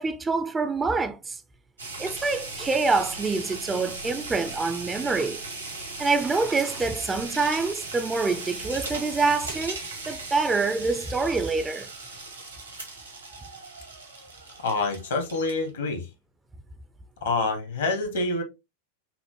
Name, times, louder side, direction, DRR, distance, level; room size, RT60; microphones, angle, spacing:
voice 1, 0.0-1.4 2.0-5.4 6.0-11.9, right 4 dB, 15° right, 0.4 m, -26 dB
sound 1, 1.8-15.7, right 3 dB, 80° right, 1.2 m, -38 dB
voice 2, 14.6-16.1 17.2-18.4, left 3 dB, 65° left, 1.0 m, -27 dB
5.7 x 2.1 x 2.8 m
figure-of-eight pair, 90°, 0 cm